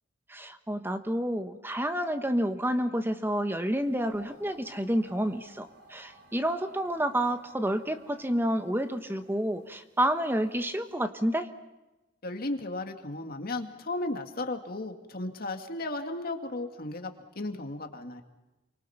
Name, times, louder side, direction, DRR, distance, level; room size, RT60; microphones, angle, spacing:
voice 1, 0.3-11.5, equal, 10° right, 8 dB, 1.2 m, -29 dB
sound 1, 3.8-10.9, right 1 dB, 60° right, 5.3 m, -58 dB
voice 2, 12.2-18.2, left 2 dB, 50° left, 5 dB, 2.2 m, -35 dB
29.0 x 24.5 x 5.8 m, 1.1 s
head